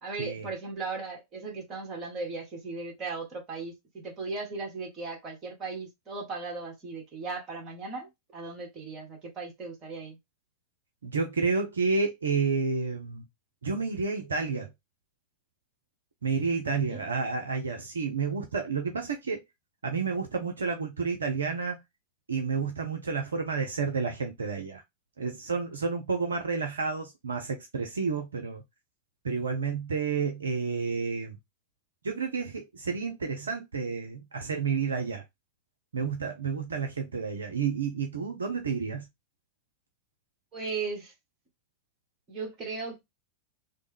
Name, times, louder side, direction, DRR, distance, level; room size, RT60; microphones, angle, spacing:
voice 1, 0.0-10.2 16.9-17.0 40.5-41.1 42.3-43.0, right 4 dB, 30° right, 1.4 m, -37 dB
voice 2, 11.0-13.2 13.6-14.7 16.2-19.4 19.8-21.8 22.3-24.8 25.2-28.6 29.2-31.4 32.0-35.2 35.9-39.1, right 5 dB, 70° right, 0.5 m, -30 dB
3.2 x 2.1 x 3.3 m
figure-of-eight pair, 90°, 0 cm